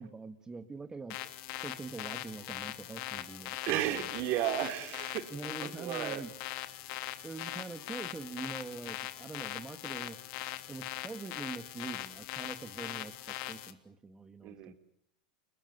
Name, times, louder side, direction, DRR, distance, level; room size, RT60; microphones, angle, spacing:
voice 1, 0.0-1.3 1.6-4.1 5.3-6.3 7.2-10.2 10.7-14.7, right 4 dB, 15° right, 9 dB, 2.0 m, -44 dB
sound 1, 1.1-13.7, left 16 dB, 60° left, 3.0 m, -41 dB
voice 2, 3.7-5.3 5.6-6.2 14.4-14.7, right 12 dB, 50° right, 8 dB, 3.8 m, -33 dB
30.0 x 21.0 x 9.6 m, 0.76 s
hypercardioid pair, 105°, 5 cm